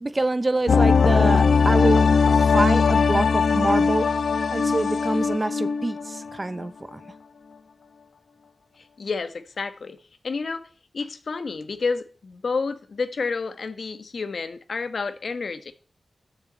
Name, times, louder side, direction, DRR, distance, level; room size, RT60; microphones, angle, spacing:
voice 1, 0.0-4.1 4.5-7.0, right 2 dB, 30° right, 0.9 m, -26 dB
sound 1, 0.7-6.3 6.6-6.7, left 5 dB, 85° left, 0.9 m, -20 dB
voice 2, 9.0-10.0 10.2-10.7 10.9-15.7, left 4 dB, 70° left, 1.5 m, -30 dB
13.0 x 7.3 x 8.2 m
wide cardioid pair, 75°, 0 cm